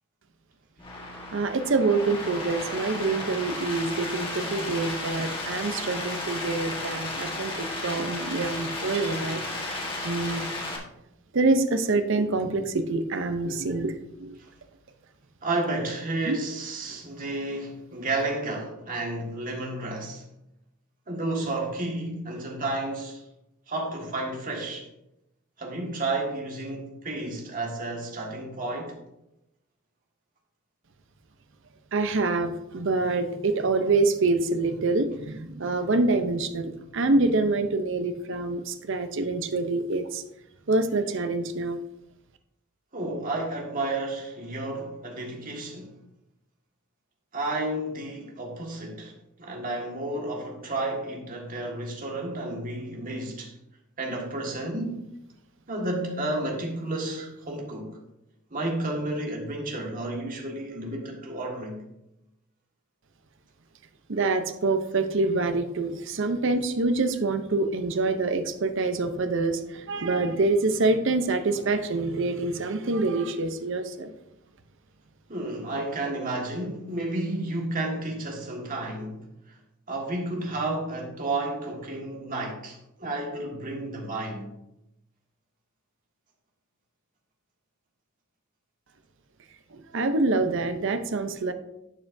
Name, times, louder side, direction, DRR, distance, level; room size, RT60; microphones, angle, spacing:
sound 1, 0.8-10.8, left 2 dB, 25° left, 1.6 m, -34 dB
voice 1, 1.3-10.5 11.3-14.4 16.3-16.4 16.9-17.0 31.9-40.2 40.7-41.8 64.1-74.1 89.7-91.5, right 3 dB, 60° right, 0.7 m, -26 dB
voice 2, 15.4-20.2 21.1-23.2 23.7-24.9 25.6-28.9 42.9-45.9 47.3-49.1 49.4-53.5 54.0-55.0 55.7-57.9 58.5-61.8 75.3-79.6 79.9-84.5, right 2 dB, 40° right, 1.8 m, -31 dB
11.5 x 7.5 x 2.7 m
head